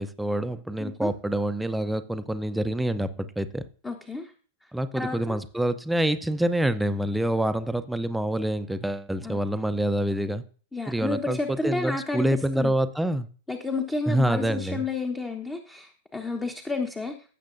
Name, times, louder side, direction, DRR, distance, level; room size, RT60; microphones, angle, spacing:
voice 1, 0.0-3.7 4.7-10.4 10.9-13.3 14.1-14.9, right 1 dB, 5° right, 0.7 m, -26 dB
voice 2, 3.8-4.3 4.9-5.4 9.2-9.4 10.7-12.3 12.6-12.7 13.5-17.1, left 3 dB, 10° left, 1.0 m, -31 dB
16.5 x 7.5 x 2.6 m
figure-of-eight pair, 95°, 0 cm